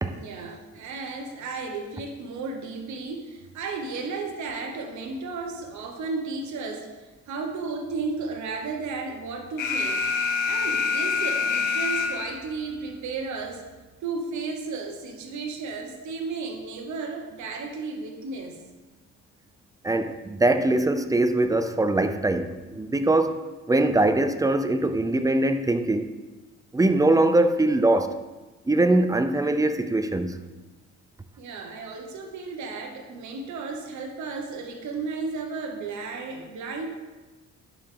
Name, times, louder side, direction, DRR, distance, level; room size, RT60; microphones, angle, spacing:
voice 1, 0.1-6.9 7.3-10.0 10.4-13.6 14.0-18.6 31.4-36.9, right 4 dB, 70° right, 1.1 m, -34 dB
Alarm, 9.6-12.6, left 5 dB, 85° left, 0.8 m, -26 dB
voice 2, 19.8-26.1 26.7-28.1 28.7-30.4, right 2 dB, 10° right, 0.5 m, -22 dB
10.5 x 4.8 x 3.8 m
cardioid pair, 90°, 30 cm